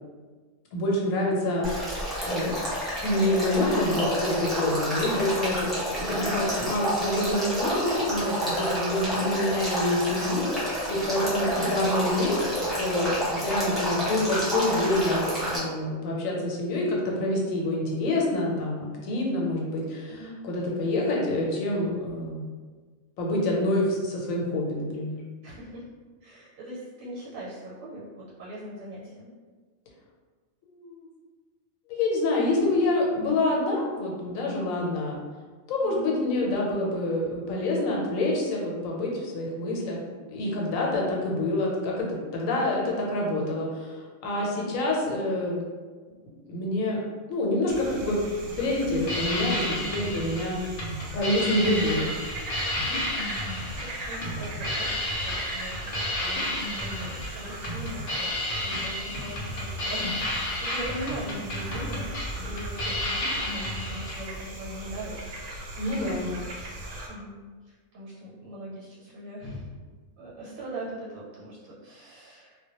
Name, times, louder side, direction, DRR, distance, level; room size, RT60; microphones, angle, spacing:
voice 1, 0.7-1.9 2.2-2.5 3.0-12.4 12.8-22.4 23.2-25.2 30.7-31.1 31.9-35.2 35.7-40.0 40.3-42.1 42.3-44.0 44.2-45.7 46.5-47.0 47.3-50.6 51.1-52.1 65.8-66.3, left 1 dB, 80° left, -2 dB, 1.0 m, -27 dB
Male speech man speaking / Stream / Trickle dribble, 1.6-15.6, equal, ahead, 0.3 m, -29 dB
voice 2, 11.4-11.7 20.1-20.4 25.4-25.9 26.2-29.3 35.8-36.1 44.6-44.8 52.7-53.0 53.3-65.2 66.2-66.4 67.1-69.7 70.2-72.6, equal, 90° right, -8 dB, 1.1 m, -41 dB
sound 1, 47.7-67.1, right 1 dB, 70° right, 0.8 m, -39 dB
sound 2, 48.9-64.2, left 1 dB, 60° left, 0.6 m, -32 dB
2.1 x 2.1 x 2.8 m, 1.4 s
omnidirectional pair, 1.4 m